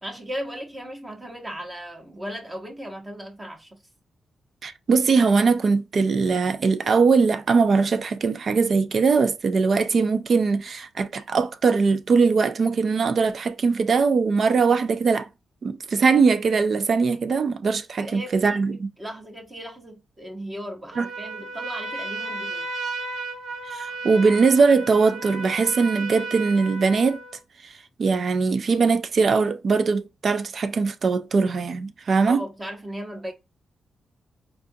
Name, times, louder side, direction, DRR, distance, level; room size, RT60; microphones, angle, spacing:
voice 1, 0.0-3.8 18.0-22.7 32.3-33.3, equal, 15° right, 0.9 m, -37 dB
voice 2, 4.6-15.3 15.6-18.9 21.0-21.1 23.7-27.2 27.6-27.7 28.0-32.4, right 4 dB, 40° right, 0.4 m, -21 dB
Trumpet, 20.9-27.4, right 2 dB, 65° right, 1.0 m, -34 dB
4.5 x 2.5 x 2.6 m
wide cardioid pair, 175°, 0 cm